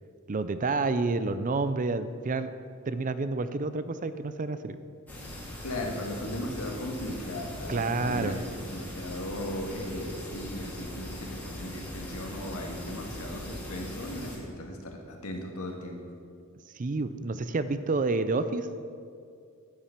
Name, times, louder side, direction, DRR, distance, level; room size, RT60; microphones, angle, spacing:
voice 1, 0.3-2.5 2.9-4.8 7.7-8.4 16.8-18.7, right 3 dB, 35° right, 12 dB, 0.4 m, -29 dB
sound 1, 5.1-14.4, left 1 dB, 5° left, 2.3 m, -40 dB
voice 2, 5.6-16.0, left 1 dB, 80° left, 1 dB, 1.8 m, -37 dB
11.5 x 8.9 x 5.9 m, 2.4 s
head